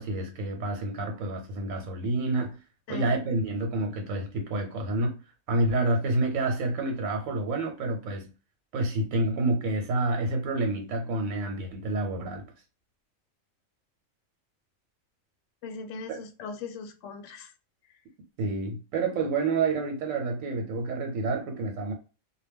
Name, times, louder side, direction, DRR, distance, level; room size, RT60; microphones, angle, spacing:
voice 1, 0.0-2.6 2.9-5.2 5.5-8.3 8.7-12.5 16.1-16.2 18.4-21.9, right 2 dB, 85° right, 1.0 m, -28 dB
voice 2, 2.9-3.2 15.6-17.5, left 4 dB, 70° left, 0.9 m, -39 dB
2.2 x 2.1 x 3.3 m
omnidirectional pair, 1.4 m